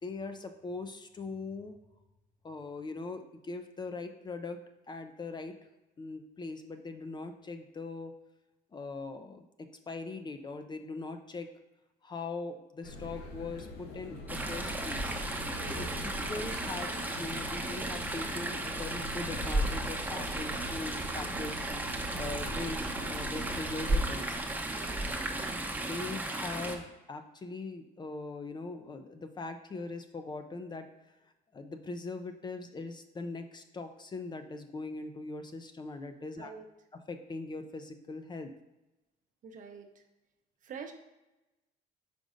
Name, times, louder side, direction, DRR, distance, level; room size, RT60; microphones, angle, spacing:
voice 1, 0.0-1.8 2.4-4.6 4.9-5.5 6.0-8.1 8.7-11.5 12.0-15.1 15.8-21.6 22.2-24.4 25.8-30.9 31.5-36.5 36.9-38.5, left 3 dB, 25° left, 7 dB, 0.5 m, -41 dB
sound 1, 12.8-24.1, left 1 dB, 85° left, 1.1 m, -43 dB
Chatter / Stream, 14.3-26.8, right 1 dB, 10° right, 0.7 m, -34 dB
voice 2, 15.6-16.0 24.6-25.0 36.4-36.7 39.4-40.0 40.6-40.9, right 5 dB, 50° right, 5 dB, 0.8 m, -46 dB
5.2 x 3.8 x 5.0 m, 1.0 s
cardioid pair, 110°, 17 cm